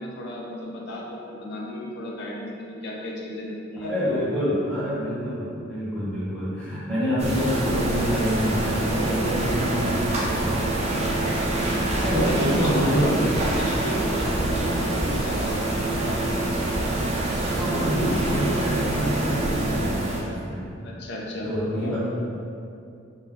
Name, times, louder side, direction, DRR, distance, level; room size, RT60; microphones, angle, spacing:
voice 1, 0.0-4.8 12.0-16.3 18.0-18.5 20.8-21.9, equal, 60° left, -2 dB, 0.4 m, -33 dB
voice 2, 3.8-11.2 11.6-13.3 17.4-20.8 21.4-22.0, equal, 5° left, -12 dB, 0.9 m, -27 dB
sound 1, 7.2-20.2, right 1 dB, 35° right, 0.4 m, -25 dB
2.3 x 2.2 x 3.5 m, 2.5 s
head